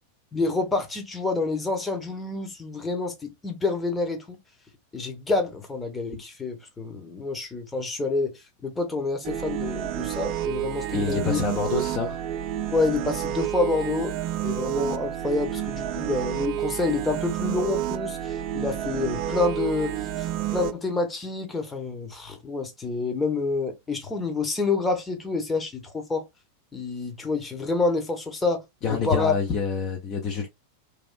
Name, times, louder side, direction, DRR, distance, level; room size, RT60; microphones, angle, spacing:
voice 1, 0.3-4.4 4.9-11.4 12.7-14.1 14.4-26.3 26.7-28.6 28.9-29.3, left 3 dB, 10° left, 0.9 m, -28 dB
sound 1, 9.2-20.7, right 12 dB, 40° right, 0.3 m, -30 dB
voice 2, 10.9-12.2 28.8-30.5, left 5 dB, 35° left, 0.6 m, -27 dB
3.0 x 2.5 x 2.3 m
figure-of-eight pair, 90°, 0 cm